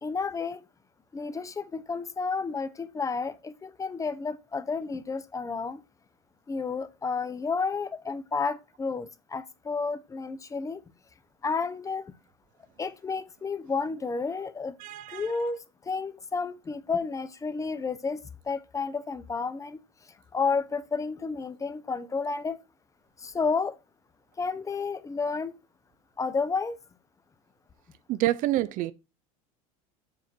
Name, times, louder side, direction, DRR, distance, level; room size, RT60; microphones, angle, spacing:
voice 1, 0.0-0.6 1.1-5.8 6.5-10.8 11.4-12.1 12.8-14.7 15.1-18.2 18.5-19.8 20.3-22.6 23.2-23.8 24.4-25.5 26.2-26.8, left 4 dB, 20° left, 0.6 m, -31 dB
voice 2, 14.8-15.3 28.1-28.9, right 15 dB, 50° right, 0.4 m, -27 dB
7.4 x 2.6 x 5.8 m
supercardioid pair, 100°, 18 cm